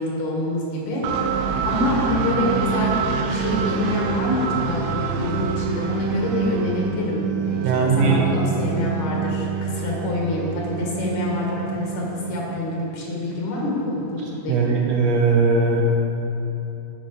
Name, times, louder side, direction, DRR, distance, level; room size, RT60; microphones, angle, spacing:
voice 1, 0.0-14.7, left 2 dB, 80° left, -3 dB, 3.0 m, -26 dB
sound 1, 1.0-12.8, right 6 dB, 90° right, 2.0 m, -26 dB
voice 2, 7.6-8.2 14.2-15.8, right 4 dB, 70° right, -1 dB, 1.9 m, -20 dB
11.5 x 5.3 x 4.9 m, 2.9 s
omnidirectional pair, 3.4 m